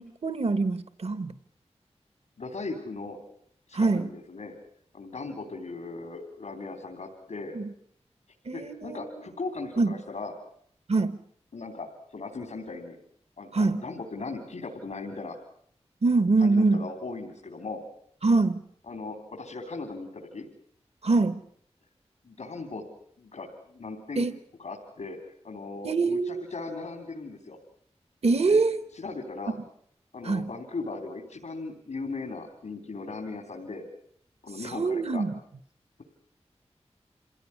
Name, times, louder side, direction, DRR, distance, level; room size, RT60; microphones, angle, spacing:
voice 1, 0.0-1.3 3.7-4.1 7.5-7.7 8.5-9.0 9.8-9.9 10.9-11.2 13.5-13.8 16.0-16.9 18.2-18.6 21.0-21.4 24.2-24.4 25.8-26.4 28.2-28.8 30.2-30.5 34.5-35.4, right 3 dB, 65° right, 1.2 m, -24 dB
voice 2, 2.4-3.2 3.7-4.6 4.9-7.6 8.5-10.3 11.5-13.0 13.4-15.4 16.4-17.8 18.9-20.5 22.2-22.8 23.2-24.3 24.6-27.6 28.5-28.6 28.9-29.6 30.1-33.9 34.4-35.2, left 3 dB, 90° left, 3.6 m, -38 dB
27.5 x 17.0 x 9.9 m
wide cardioid pair, 50°, 12 cm